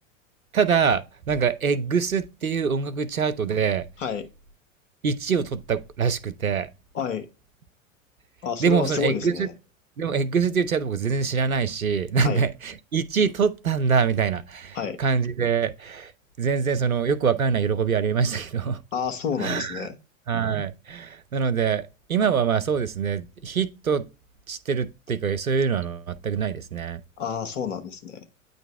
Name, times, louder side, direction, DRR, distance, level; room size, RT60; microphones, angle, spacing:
voice 1, 0.5-3.9 5.0-6.7 8.6-9.5 10.0-16.1 16.4-18.8 19.4-19.9 20.3-24.1 24.5-27.0, right 6 dB, 90° right, 0.7 m, -24 dB
voice 2, 6.9-7.3 8.4-9.5 12.2-12.4 14.7-15.0 18.9-20.0 27.2-28.3, left 7 dB, 65° left, 1.3 m, -29 dB
9.0 x 3.9 x 3.2 m
figure-of-eight pair, 85°, 40 cm